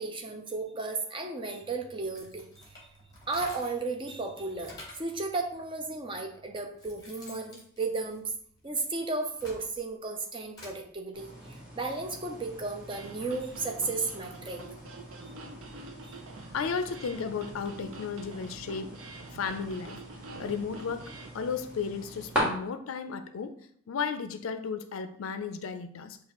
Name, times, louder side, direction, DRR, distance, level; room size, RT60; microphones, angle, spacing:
voice 1, 0.0-2.8 3.3-8.2 8.6-14.6 16.0-16.1, right 3 dB, 25° right, 3 dB, 0.5 m, -34 dB
sound 1, 2.0-3.9 4.3-5.2 6.0-6.1 6.5-8.7 9.1-10.8, left 2 dB, 20° left, 1.0 m, -49 dB
sound 2, 11.1-22.4, equal, 5° right, 1.4 m, -42 dB
sound 3, 12.9-21.3, right 3 dB, 80° right, 0.5 m, -47 dB
voice 2, 16.5-19.0 19.3-20.0 20.4-23.5 23.9-26.2, left 6 dB, 85° left, 10 dB, 0.4 m, -34 dB
6.6 x 2.4 x 3.0 m, 0.63 s
head